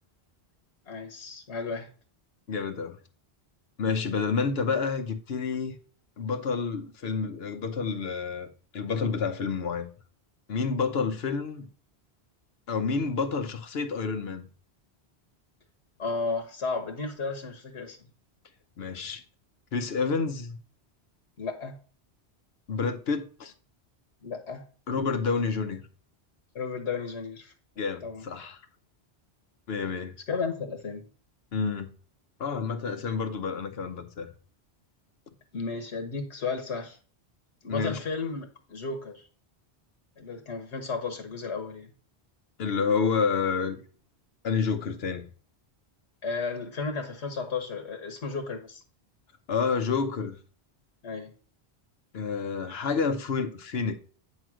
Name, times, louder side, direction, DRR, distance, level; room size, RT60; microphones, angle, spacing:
voice 1, 0.9-1.9 16.0-18.0 21.4-21.8 24.2-24.6 26.5-27.5 28.0-28.2 30.3-31.1 35.5-37.0 37.6-39.2 40.2-41.9 46.2-48.8 51.0-51.3, left 4 dB, 90° left, 1.4 m, -33 dB
voice 2, 2.5-3.0 3.8-5.8 6.2-8.5 8.7-9.9 10.5-11.7 12.7-14.5 18.8-19.2 19.7-20.6 22.7-23.5 24.9-25.8 27.8-28.6 29.7-30.1 31.5-31.9 32.4-34.3 37.7-38.0 42.6-43.8 44.4-45.3 49.5-50.4 52.1-54.0, left 5 dB, 70° left, 1.1 m, -29 dB
9.0 x 3.1 x 6.1 m
omnidirectional pair, 1.1 m